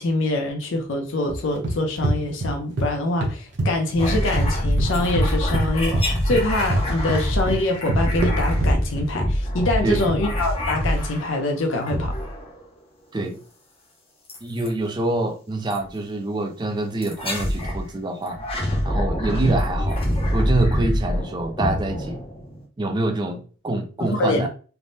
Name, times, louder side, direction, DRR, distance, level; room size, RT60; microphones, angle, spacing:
voice 1, 0.0-12.1 24.0-24.5, left 2 dB, 70° left, 0.5 m, -24 dB
Footsteps Running On Wooden Floor Fast Pace, 1.3-2.9 3.2-4.5 4.8-9.1, right 1 dB, 60° right, 0.7 m, -25 dB
sound 1, 4.0-11.4 11.8-12.6 14.3-14.7 15.7-15.9 17.0-17.8 18.3-22.6, equal, 30° left, 0.7 m, -25 dB
voice 2, 14.4-18.5 18.8-22.2 22.8-24.5, right 2 dB, 20° right, 0.3 m, -26 dB
3.4 x 2.0 x 2.6 m
head